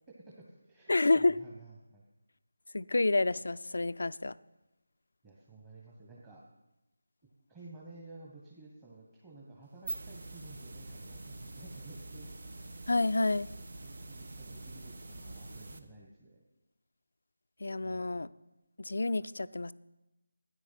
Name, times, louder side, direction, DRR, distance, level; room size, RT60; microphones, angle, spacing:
voice 1, 0.1-2.0 5.2-6.4 7.5-12.3 13.8-16.4 17.8-18.0, right 2 dB, 15° right, -5 dB, 1.3 m, -53 dB
voice 2, 0.9-1.4 2.7-4.3 12.9-13.5 17.6-18.3 18.8-19.7, left 2 dB, 65° left, 16 dB, 0.4 m, -29 dB
sound 1, 9.6-15.8, right 2 dB, 60° right, 1.1 m, -45 dB
12.5 x 9.8 x 5.8 m, 0.98 s
figure-of-eight pair, 160°, 0 cm